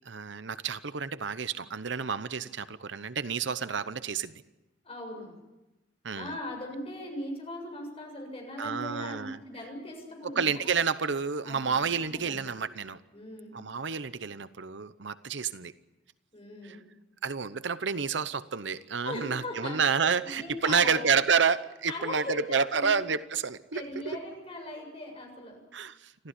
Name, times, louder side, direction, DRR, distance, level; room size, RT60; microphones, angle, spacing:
voice 1, 0.1-4.3 6.0-6.3 8.6-9.4 10.2-13.0 13.5-15.7 16.6-16.8 17.2-24.2 25.7-26.3, right 6 dB, 65° right, 14 dB, 0.8 m, -29 dB
voice 2, 4.8-5.3 6.1-10.7 11.4-12.6 13.1-13.5 16.3-16.8 19.0-19.8 20.2-21.0 21.9-22.4 22.7-23.0 23.7-25.6, left 1 dB, 30° left, 2 dB, 7.3 m, -39 dB
26.0 x 15.0 x 10.0 m, 1.0 s
head